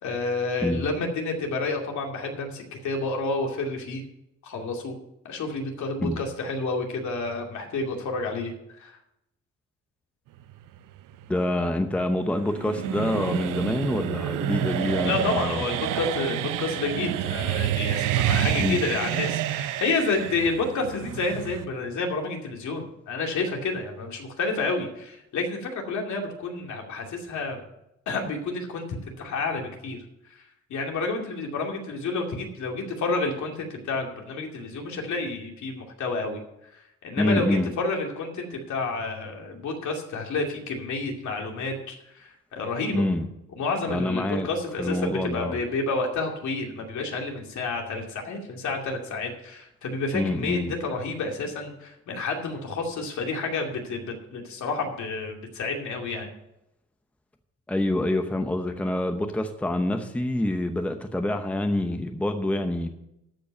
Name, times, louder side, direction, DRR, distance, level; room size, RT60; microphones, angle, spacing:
voice 1, 0.0-4.0 4.4-4.9 5.2-8.5 8.8-9.0 15.0-27.6 28.1-30.0 30.7-36.4 36.7-43.0 43.6-56.3, left 3 dB, 70° left, 1 dB, 2.5 m, -30 dB
sound 1, 10.5-21.7, right 12 dB, 85° right, 0.6 m, -29 dB
voice 2, 11.3-15.6 18.6-18.8 37.2-37.7 42.9-43.3 43.9-44.5 44.8-45.6 50.1-50.7 57.7-62.9, left 1 dB, 5° left, 7 dB, 0.7 m, -26 dB
13.5 x 5.3 x 6.9 m, 0.84 s
cardioid pair, 130°, 30 cm